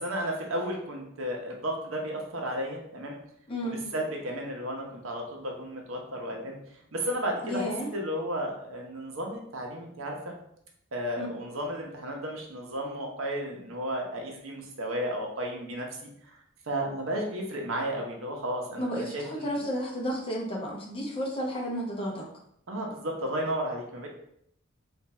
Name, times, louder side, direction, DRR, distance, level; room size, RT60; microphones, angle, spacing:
voice 1, 0.0-3.2 3.6-6.6 6.9-10.3 10.9-15.9 16.2-16.3 16.7-19.6 22.7-24.1, equal, 90° right, 0 dB, 0.9 m, -33 dB
voice 2, 3.5-3.8 7.4-7.9 11.2-11.3 18.8-22.2, equal, 25° left, -3 dB, 0.9 m, -32 dB
3.5 x 2.5 x 4.2 m, 0.71 s
head